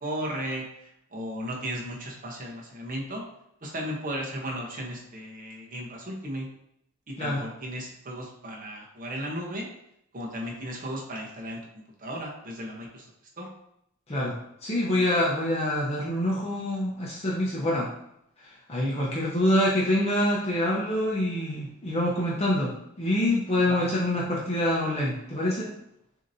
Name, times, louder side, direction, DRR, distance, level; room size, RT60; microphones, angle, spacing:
voice 1, 0.0-3.2 3.6-6.5 7.1-9.7 10.1-13.1 13.4-13.5 19.0-19.2 23.6-23.9, equal, 40° right, -1 dB, 0.9 m, -35 dB
voice 2, 14.1-17.9 18.7-25.7, left 1 dB, 30° left, -5 dB, 0.8 m, -26 dB
6.4 x 2.8 x 2.7 m, 0.76 s
head